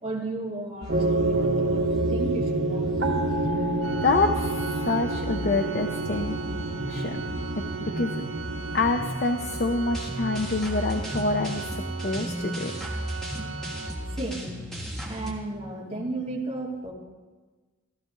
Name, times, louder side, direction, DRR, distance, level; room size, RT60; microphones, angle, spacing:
voice 1, 0.0-2.9 12.2-12.3 12.7-12.8 13.4-13.5 14.1-14.5 15.0-16.9, right 2 dB, 30° right, -5 dB, 2.7 m, -34 dB
sound 1, 0.8-15.3, equal, ahead, 1.6 m, -34 dB
sound 2, 0.9-9.1, right 2 dB, 60° right, 1.1 m, -28 dB
Organ, 3.8-14.5, right 6 dB, 85° right, 1.0 m, -39 dB
voice 2, 4.0-6.4 6.9-7.2 7.6-8.3 8.7-12.7, left 3 dB, 50° left, 5 dB, 0.6 m, -27 dB
14.5 x 14.0 x 3.9 m, 1.3 s
head